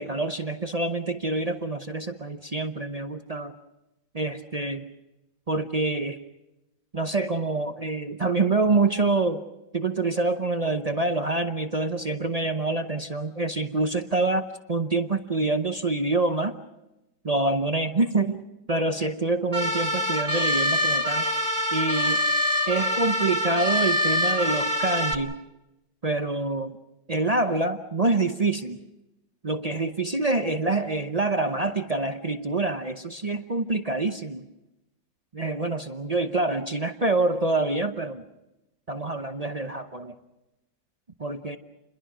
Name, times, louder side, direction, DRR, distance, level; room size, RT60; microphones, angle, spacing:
voice 1, 0.0-3.5 4.1-4.9 5.5-6.2 6.9-9.4 9.7-16.5 17.2-21.3 21.7-22.2 22.7-25.4 26.0-26.8 27.1-28.8 29.4-34.4 35.3-38.2 38.9-40.2 41.2-41.6, right 2 dB, 55° right, 7 dB, 0.4 m, -26 dB
sound 1, 19.5-25.1, equal, 20° right, 1.9 m, -25 dB
29.0 x 22.0 x 6.1 m, 0.95 s
omnidirectional pair, 2.1 m